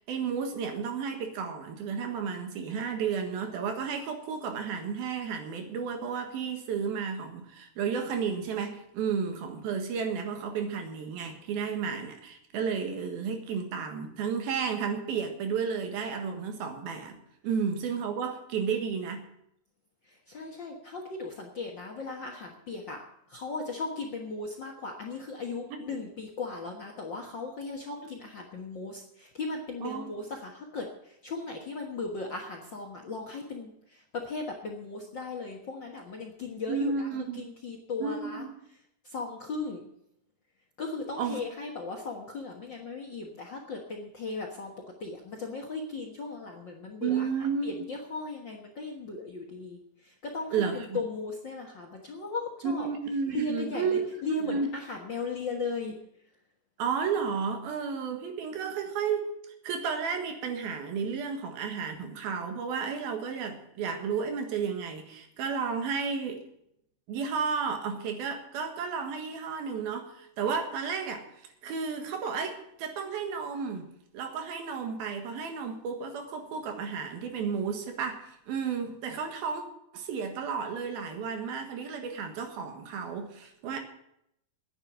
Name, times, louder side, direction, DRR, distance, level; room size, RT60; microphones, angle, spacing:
voice 1, 0.1-17.2 17.4-19.3 25.7-25.9 29.8-30.1 36.7-37.5 38.0-38.5 41.2-41.4 47.0-47.8 50.5-50.9 52.6-54.0 54.4-54.7 56.8-59.3 59.6-66.4 67.1-71.3 71.6-73.9 74.1-79.6 79.9-83.8, right 6 dB, 75° right, 5 dB, 3.4 m, -32 dB
voice 2, 20.3-23.0 23.3-38.4 39.0-39.8 40.8-47.3 47.6-52.9 53.3-56.0, left 3 dB, 75° left, 0 dB, 1.0 m, -37 dB
10.5 x 8.8 x 10.0 m, 0.75 s
omnidirectional pair, 4.5 m